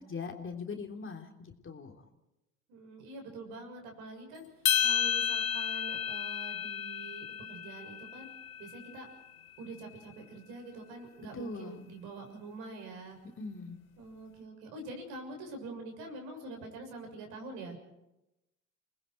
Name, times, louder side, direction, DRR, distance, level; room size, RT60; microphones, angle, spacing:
voice 1, 0.0-2.0 11.3-11.8 13.4-13.8, left 4 dB, 30° left, 3 dB, 3.3 m, -41 dB
voice 2, 2.7-4.4 4.8-8.3 8.6-9.1 9.6-13.2 14.0-17.8, right 2 dB, 65° right, 3 dB, 6.9 m, -45 dB
sound 1, 4.7-9.1, left 8 dB, 90° left, 1.5 m, -32 dB
29.5 x 20.5 x 4.6 m, 0.92 s
hypercardioid pair, 70°, 40 cm